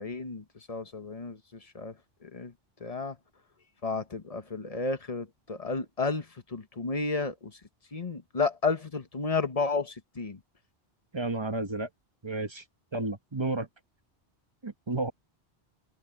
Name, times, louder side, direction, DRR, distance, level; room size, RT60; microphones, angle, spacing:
voice 1, 0.0-1.4 1.7-1.9 2.2-2.5 2.8-3.2 3.8-7.6 7.9-10.4, left 4 dB, 35° left, 1.2 m, -32 dB
voice 2, 11.1-11.9 12.2-12.6 12.9-13.7 14.6-15.1, right 2 dB, 25° right, 1.2 m, -31 dB
omnidirectional pair, 1.1 m